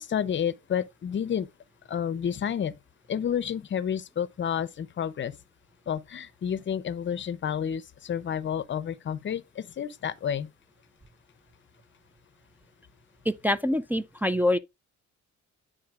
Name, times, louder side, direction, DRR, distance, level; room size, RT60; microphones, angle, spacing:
voice 1, 0.0-1.5 1.9-2.7 3.1-5.3 5.9-10.5, left 8 dB, 40° left, 0.6 m, -30 dB
voice 2, 13.3-14.6, left 1 dB, 5° right, 0.3 m, -25 dB
10.5 x 3.7 x 2.4 m
cardioid pair, 90°, 30 cm